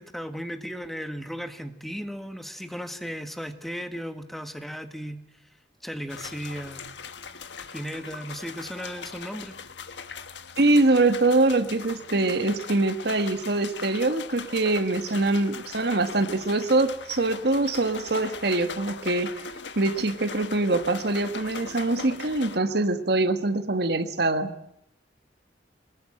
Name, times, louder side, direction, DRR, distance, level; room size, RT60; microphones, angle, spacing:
voice 1, 0.0-5.2 5.8-6.8 7.7-9.5, equal, ahead, 7 dB, 1.5 m, -36 dB
sound 1, 6.1-22.6, left 5 dB, 70° left, 1.5 m, -40 dB
voice 2, 10.6-19.3 19.8-24.6, right 2 dB, 60° right, 9 dB, 1.6 m, -24 dB
24.0 x 20.5 x 8.9 m, 0.78 s
head